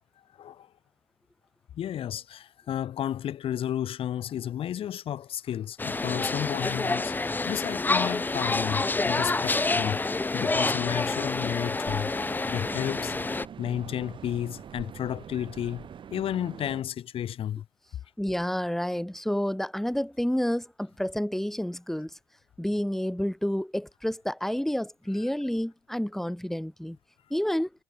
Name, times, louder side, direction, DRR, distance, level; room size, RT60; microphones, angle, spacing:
voice 1, 1.8-12.1 12.5-13.1 13.6-17.6, left 10 dB, 65° left, 6.2 m, -32 dB
sound 1, 5.8-13.5, left 3 dB, 20° left, 1.0 m, -28 dB
sound 2, 11.8-16.8, right 8 dB, 55° right, 5.6 m, -44 dB
voice 2, 18.2-22.1 22.6-27.0 27.3-27.7, equal, 5° left, 4.8 m, -29 dB
cardioid pair, 80°, 10 cm